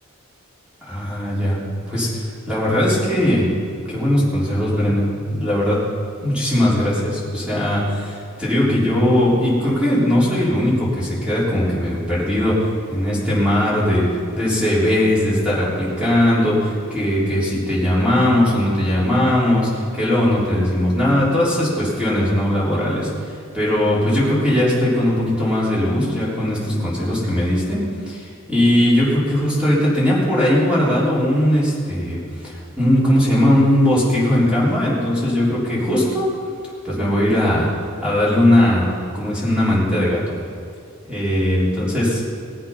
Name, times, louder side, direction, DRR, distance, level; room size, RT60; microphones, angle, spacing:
voice 1, 0.8-3.5 3.9-5.8 6.2-36.3 36.8-37.7 38.0-38.9 39.1-40.4 41.1-42.2, left 1 dB, 5° right, -8 dB, 3.7 m, -19 dB
20.0 x 7.8 x 5.6 m, 2.3 s
head